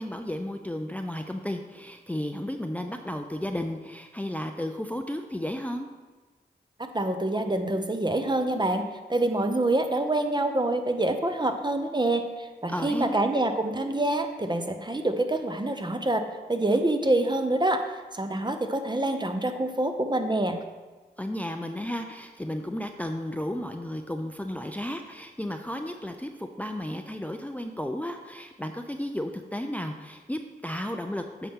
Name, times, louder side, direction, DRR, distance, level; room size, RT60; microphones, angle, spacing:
voice 1, 0.0-5.9 12.7-13.1 21.2-31.5, left 1 dB, 10° left, 5 dB, 0.5 m, -33 dB
voice 2, 6.8-8.8 9.1-16.2 16.5-20.6, right 2 dB, 25° right, 6 dB, 0.8 m, -26 dB
8.4 x 5.7 x 3.7 m, 1.3 s
cardioid pair, 40°, 18 cm